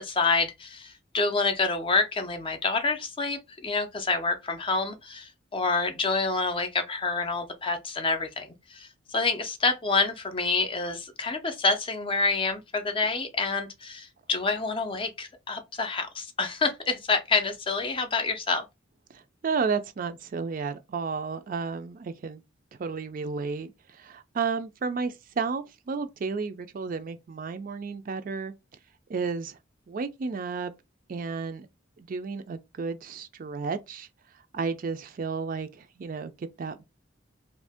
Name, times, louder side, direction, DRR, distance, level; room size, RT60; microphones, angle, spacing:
voice 1, 0.0-18.6, left 4 dB, 30° left, 0.5 m, -27 dB
voice 2, 19.1-22.4 22.8-28.5 29.1-29.6 29.9-30.7 31.1-31.7 32.0-34.1 34.5-36.8, right 5 dB, 45° right, 0.4 m, -32 dB
2.8 x 2.6 x 3.4 m
head